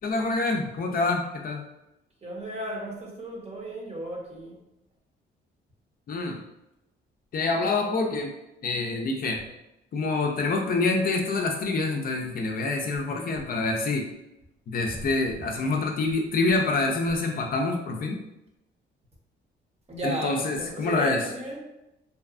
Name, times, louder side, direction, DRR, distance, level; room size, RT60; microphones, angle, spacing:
voice 1, 0.0-1.6 6.1-6.4 7.3-8.3 8.6-9.4 9.9-14.1 14.7-18.2 20.0-21.3, left 3 dB, 45° left, 2 dB, 0.4 m, -26 dB
voice 2, 2.2-4.6 19.9-21.6, right 1 dB, 30° right, -1 dB, 0.8 m, -34 dB
2.7 x 2.2 x 2.4 m, 0.91 s
cardioid pair, 90°, 20 cm